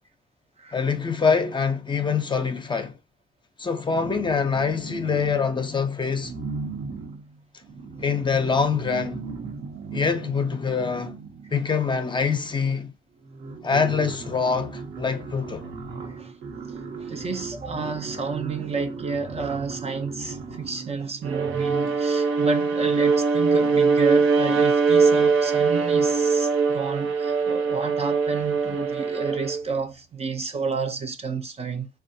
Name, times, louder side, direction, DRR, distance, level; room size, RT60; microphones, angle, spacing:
voice 1, 0.7-2.9 3.6-6.3 8.0-9.2 9.9-11.2 11.5-12.9 13.6-15.7, left 5 dB, 25° left, 0.5 m, -24 dB
sound 1, 3.9-5.7 6.2-11.9 12.8-12.9 13.2-22.0, right 4 dB, 70° right, 1.0 m, -37 dB
voice 2, 16.0-16.3 17.0-31.9, right 4 dB, 30° right, 0.5 m, -30 dB
Bowed string instrument, 21.3-29.6, right 5 dB, 90° right, 0.6 m, -22 dB
3.6 x 2.3 x 2.6 m
cardioid pair, 90°, 20 cm